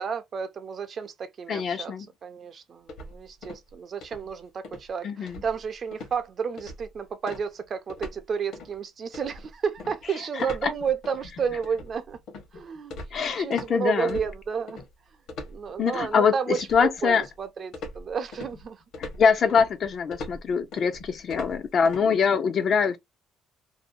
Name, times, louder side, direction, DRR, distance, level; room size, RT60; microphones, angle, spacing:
voice 1, 0.0-1.9 2.2-12.2 12.5-14.8 15.5-18.8, right 6 dB, 35° right, 0.5 m, -32 dB
voice 2, 1.5-2.1 5.0-5.4 10.6-10.7 13.1-14.2 15.8-17.2 19.0-23.0, left 6 dB, 40° left, 0.4 m, -24 dB
sound 1, 2.9-3.7 4.0-4.3 4.6-4.9 5.3-5.7 5.9-6.2 6.6-6.9 7.3-8.2 8.5-8.8 9.1-13.7 14.1-14.9 15.3-16.1 16.6-17.4 17.7-22.0, left 2 dB, 60° left, 1.0 m, -41 dB
2.7 x 2.1 x 2.5 m
cardioid pair, 155°, 0 cm